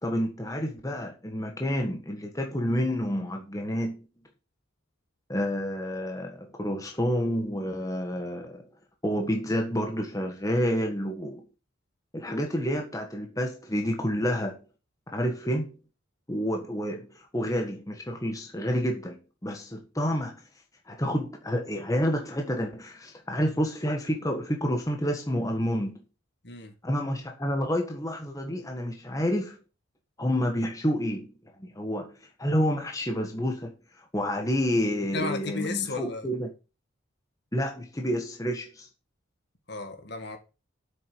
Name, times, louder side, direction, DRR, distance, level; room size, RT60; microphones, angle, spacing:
voice 1, 0.0-4.1 5.3-8.7 9.0-11.5 12.1-14.6 15.1-15.8 16.3-20.4 20.9-26.0 26.8-29.6 30.2-31.3 31.6-32.1 32.4-36.5 37.5-38.9, equal, 15° left, 1.5 m, -29 dB
voice 2, 35.1-36.3 39.7-40.4, left 4 dB, 55° left, 2.2 m, -33 dB
7.9 x 6.9 x 7.0 m
head